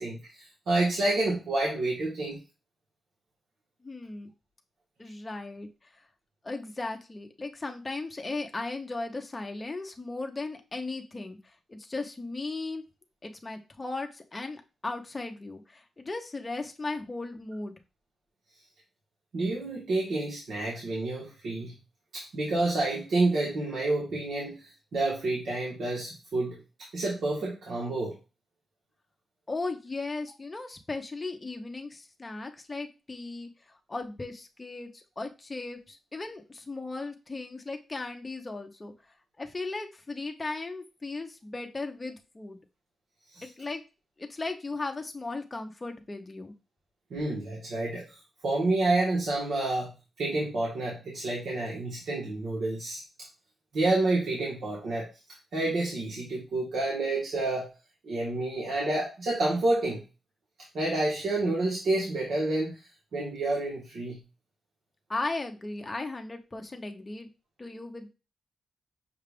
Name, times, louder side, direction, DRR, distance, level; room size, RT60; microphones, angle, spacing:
voice 1, 0.0-2.4 19.3-21.8 22.1-26.6 26.9-28.2 43.3-43.4 47.1-53.0 53.7-55.1 55.5-57.7 58.0-60.0 60.7-62.8 63.1-64.2, right 2 dB, 70° right, -4 dB, 1.2 m, -29 dB
voice 2, 3.8-4.3 5.0-5.7 6.4-12.8 13.2-17.7 29.5-38.9 39.4-42.6 43.4-43.8 44.2-46.5 65.1-67.3 67.6-68.1, left 3 dB, 20° left, 4 dB, 0.6 m, -37 dB
5.8 x 2.3 x 3.4 m, 0.30 s
wide cardioid pair, 120°, 0 cm